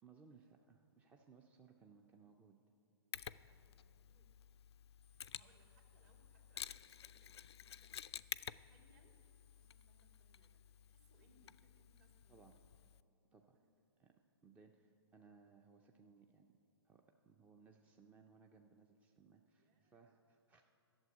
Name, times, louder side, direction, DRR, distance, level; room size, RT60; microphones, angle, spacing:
voice 1, 0.0-2.6 12.3-12.6 13.3-13.6 14.0-16.5 16.8-20.6, right 5 dB, 10° right, 4 dB, 0.4 m, -65 dB
Mechanisms, 3.1-13.0, left 9 dB, 70° left, 0.4 m, -52 dB
voice 2, 3.3-4.3 5.3-7.9 8.5-9.2 9.5-12.5 13.5-13.7 19.6-20.2, right 2 dB, 45° right, 1 dB, 2.3 m, -74 dB
11.5 x 7.1 x 9.4 m, 2.7 s
hypercardioid pair, 130°, 14 cm